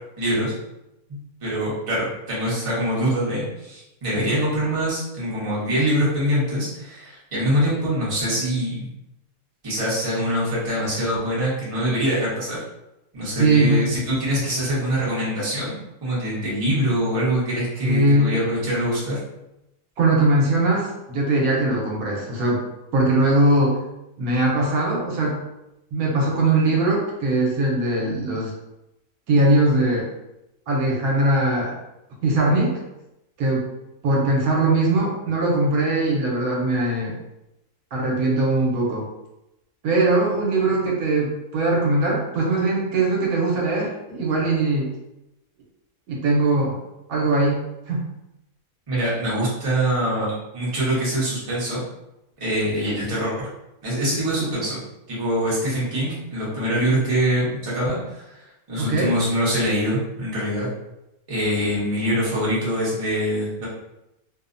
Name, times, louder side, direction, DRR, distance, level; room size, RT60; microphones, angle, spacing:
voice 1, 0.2-0.5 1.1-8.9 9.6-12.6 13.1-19.2 48.9-51.8 52.4-53.5 53.8-54.8 55.1-58.4 58.7-60.7 61.3-63.7, equal, 30° right, -7 dB, 0.7 m, -24 dB
voice 2, 13.2-13.8 17.8-18.3 20.0-22.6 22.9-23.8 24.2-25.4 25.9-28.5 29.3-30.1 30.7-31.7 32.2-32.7 33.4-33.6 34.0-37.2 37.9-39.1 39.8-44.9 46.1-46.7 47.1-47.6 47.9-48.0 58.8-59.1, right 2 dB, 80° right, -2 dB, 1.1 m, -20 dB
2.7 x 2.0 x 2.5 m, 0.90 s
omnidirectional pair, 1.6 m